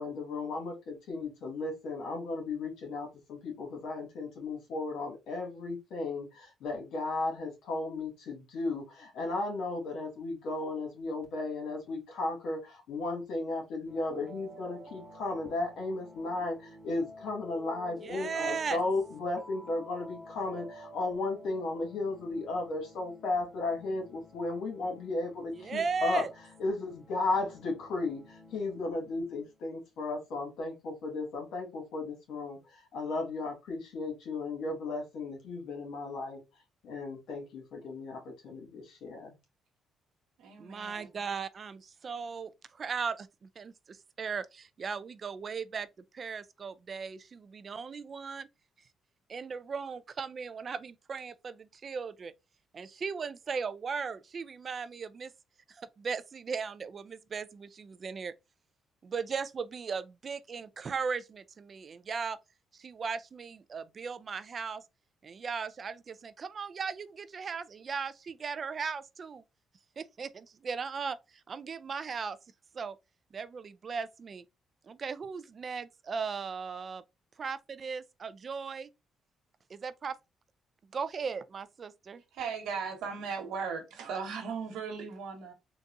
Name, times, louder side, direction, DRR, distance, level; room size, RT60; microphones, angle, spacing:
voice 1, 0.0-26.2 26.6-36.4 36.8-39.3, left 3 dB, 80° left, 1.5 m, -35 dB
sound 1, 13.9-29.6, equal, 20° left, 1.5 m, -52 dB
voice 2, 18.0-18.8 25.6-26.3 40.6-43.3 43.6-45.9 46.1-48.5 49.3-52.3 52.7-55.3 55.7-58.3 59.0-62.4 62.7-64.8 65.2-69.4 70.0-71.2 71.5-72.4 72.7-73.0 73.3-74.4 74.9-77.0 77.4-78.9 79.7-80.2 80.9-82.2, right 5 dB, 45° right, 0.3 m, -37 dB
voice 3, 40.4-41.1 82.3-85.5, right 6 dB, 85° right, 1.2 m, -37 dB
3.9 x 2.4 x 2.5 m
cardioid pair, 90°, 0 cm